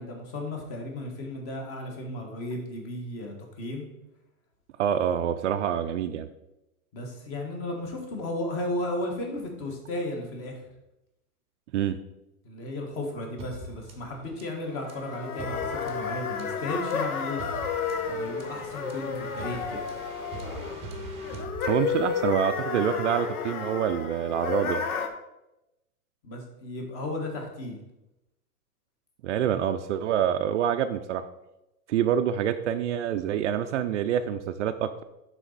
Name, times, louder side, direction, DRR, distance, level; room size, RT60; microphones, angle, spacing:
voice 1, 0.0-3.9 6.9-10.6 12.4-17.4 18.0-19.8 26.2-27.8, left 1 dB, 30° left, 2 dB, 1.6 m, -34 dB
voice 2, 4.8-6.3 11.7-12.0 21.6-24.8 29.2-31.2 31.9-35.0, right 9 dB, 55° right, 9 dB, 0.5 m, -26 dB
sound 1, 13.4-22.2, right 2 dB, 15° right, 0.8 m, -43 dB
sound 2, 14.8-25.1, left 6 dB, 70° left, 1.1 m, -32 dB
11.0 x 4.2 x 4.0 m, 0.92 s
hypercardioid pair, 150°, 45 cm